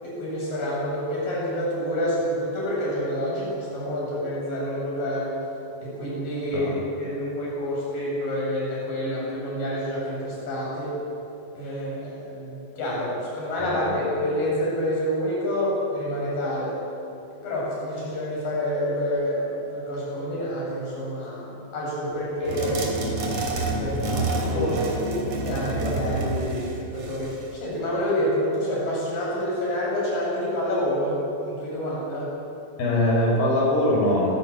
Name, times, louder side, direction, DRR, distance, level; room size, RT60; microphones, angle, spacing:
voice 1, 0.0-5.3 5.8-11.0 11.5-16.8 17.3-23.2 23.8-24.8 25.1-32.3, equal, 70° left, -5 dB, 9.1 m, -28 dB
voice 2, 13.6-14.0 24.5-24.7 32.8-34.4, left 1 dB, 85° left, -2 dB, 7.4 m, -22 dB
sound 1, 22.5-27.5, right 2 dB, 50° right, 4.0 m, -28 dB
29.0 x 13.0 x 8.9 m, 2.9 s
omnidirectional pair, 4.2 m